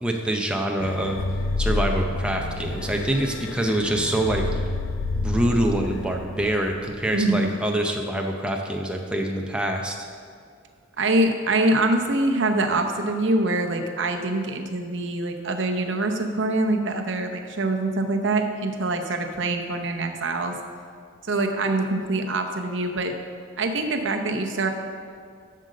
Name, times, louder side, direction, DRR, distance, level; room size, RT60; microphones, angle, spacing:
voice 1, 0.0-1.2 1.6-4.6 5.2-10.1, right 1 dB, 5° right, 1 dB, 0.5 m, -25 dB
sound 1, 0.8-7.5, left 2 dB, 85° left, 0.5 m, -29 dB
voice 2, 7.1-7.5 11.0-20.5 21.2-23.1 23.6-24.7, right 2 dB, 65° right, 4 dB, 0.8 m, -24 dB
7.8 x 6.5 x 6.4 m, 2.2 s
head